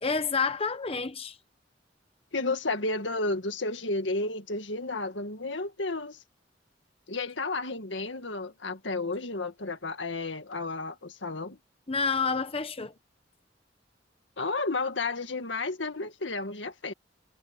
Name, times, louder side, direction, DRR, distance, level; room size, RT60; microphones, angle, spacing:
voice 1, 0.0-1.4 11.9-12.9, left 4 dB, 30° left, 0.9 m, -29 dB
voice 2, 2.3-6.2 7.1-11.6 14.4-16.9, left 3 dB, 90° left, 1.9 m, -32 dB
head